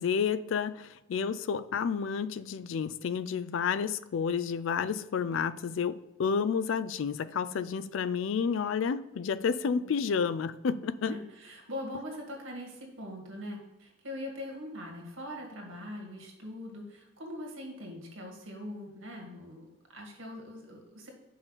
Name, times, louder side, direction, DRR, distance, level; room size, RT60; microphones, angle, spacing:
voice 1, 0.0-11.1, left 6 dB, 65° left, 0.3 m, -30 dB
voice 2, 11.0-21.1, left 1 dB, 70° right, 1.8 m, -42 dB
5.7 x 5.3 x 4.0 m
head